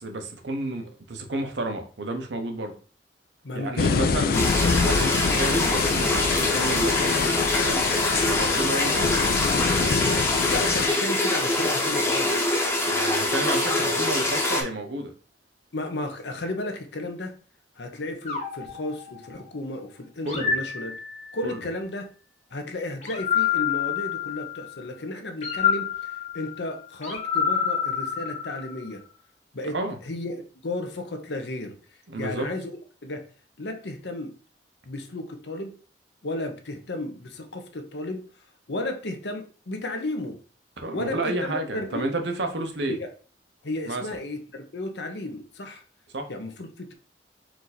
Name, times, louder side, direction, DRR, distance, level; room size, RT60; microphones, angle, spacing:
voice 1, 0.0-2.7 3.5-4.5 4.8-7.1 7.6-7.8 8.2-9.3 12.8-15.1 20.2-20.5 21.4-21.6 29.7-30.0 32.1-32.5 40.8-43.0 43.9-44.0 46.1-46.3, right 2 dB, 80° right, 5 dB, 0.8 m, -31 dB
voice 2, 3.4-4.1 4.5-4.6 10.5-12.5 13.9-14.0 15.7-17.3 17.8-20.9 21.3-22.1 22.5-25.9 26.3-29.0 29.5-29.8 30.1-31.8 32.2-32.7 33.0-33.2 33.6-34.3 34.8-35.7 36.2-38.2 38.7-40.4 40.9-42.2 42.9-43.1 43.6-45.8 46.3-46.9, left 2 dB, 75° left, 5 dB, 0.8 m, -33 dB
sound 1, 3.8-10.9, left 5 dB, 55° left, 0.3 m, -26 dB
sound 2, 4.3-14.6, left 2 dB, 15° left, 0.8 m, -24 dB
sound 3, 18.3-19.6 20.3-21.5 23.0-24.7 25.4-28.9, left 7 dB, 40° left, 1.1 m, -28 dB
4.5 x 2.6 x 4.1 m, 0.38 s
head